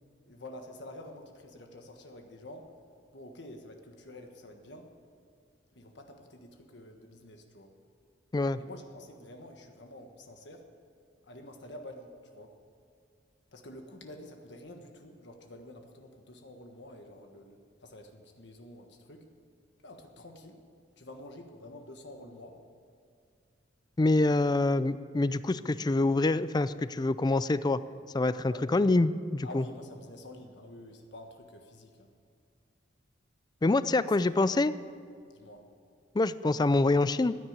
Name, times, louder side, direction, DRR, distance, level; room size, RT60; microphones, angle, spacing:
voice 1, 0.3-2.7 3.1-4.9 5.7-7.7 8.6-10.7 11.2-12.5 13.5-19.2 19.8-20.6 21.0-22.6 28.4-28.6 29.4-32.1 34.0-34.1 35.3-35.7, left 1 dB, 65° left, 4 dB, 1.4 m, -48 dB
voice 2, 24.0-27.8 28.1-29.6 33.6-34.8 36.1-37.4, left 2 dB, 20° left, 15 dB, 0.4 m, -26 dB
15.5 x 9.8 x 8.8 m, 2.3 s
head